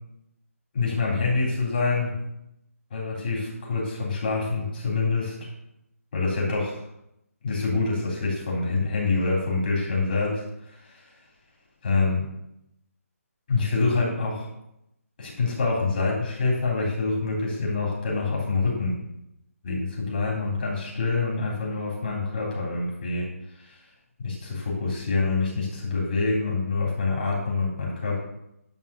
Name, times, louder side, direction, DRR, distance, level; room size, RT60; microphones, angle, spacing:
voice 1, 0.7-2.3 2.9-5.4 6.1-6.9 7.4-11.1 11.8-12.2 13.5-14.5 15.2-19.0 19.6-23.3 23.5-23.8 24.2-28.2, left 3 dB, 40° left, -3 dB, 3.4 m, -26 dB
11.0 x 3.7 x 7.0 m, 0.83 s
hypercardioid pair, 165°, 8 cm